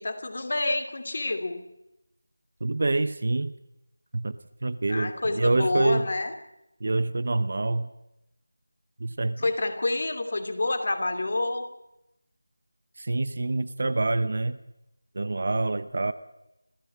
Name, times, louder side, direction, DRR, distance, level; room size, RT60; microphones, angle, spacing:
voice 1, 0.0-1.6 4.9-6.3 9.4-11.7, left 2 dB, 35° left, 8 dB, 2.8 m, -28 dB
voice 2, 2.6-3.5 4.1-6.1 6.8-7.9 9.0-9.4 13.0-14.6 15.1-16.1, right 2 dB, 35° right, 13 dB, 0.8 m, -26 dB
27.0 x 15.0 x 8.6 m, 0.88 s
figure-of-eight pair, 180°, 0 cm